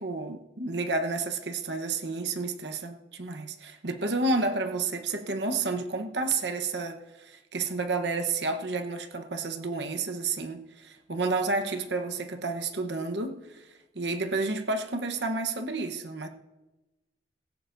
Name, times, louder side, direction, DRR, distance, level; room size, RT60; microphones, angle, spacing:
voice 1, 0.0-13.7 13.9-16.3, right 3 dB, 70° right, 5 dB, 1.0 m, -30 dB
19.0 x 17.0 x 2.6 m, 1.1 s
head